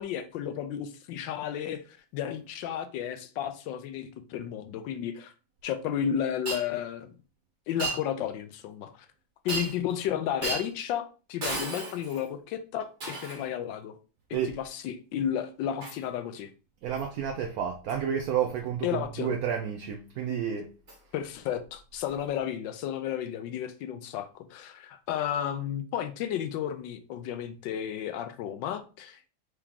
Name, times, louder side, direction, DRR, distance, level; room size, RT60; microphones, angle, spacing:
voice 1, 0.0-5.3 5.6-7.1 7.7-9.1 9.4-13.9 14.4-16.5 18.8-19.3 21.1-29.3, left 9 dB, 75° left, 1.2 m, -33 dB
Shatter, 6.5-6.6 7.8-8.0 9.5-9.9 10.4-10.7 11.4-12.3 13.0-13.5 15.8-16.0 17.0-17.1 17.9-18.0 20.9-21.0 22.1-22.2, right 3 dB, 40° right, 1.4 m, -34 dB
voice 2, 16.8-20.7, right 8 dB, 80° right, 0.8 m, -30 dB
4.7 x 2.9 x 3.6 m
omnidirectional pair, 2.1 m